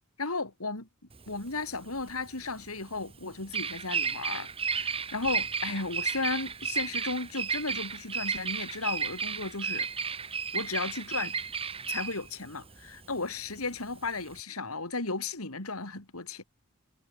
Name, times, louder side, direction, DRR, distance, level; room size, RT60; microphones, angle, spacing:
voice 1, 0.2-0.9 1.3-9.9 10.5-11.4 11.9-16.4, left 3 dB, 75° left, 3.8 m, -35 dB
Bird vocalization bird call bird song, 1.1-14.4, right 6 dB, 25° right, 1.5 m, -33 dB
head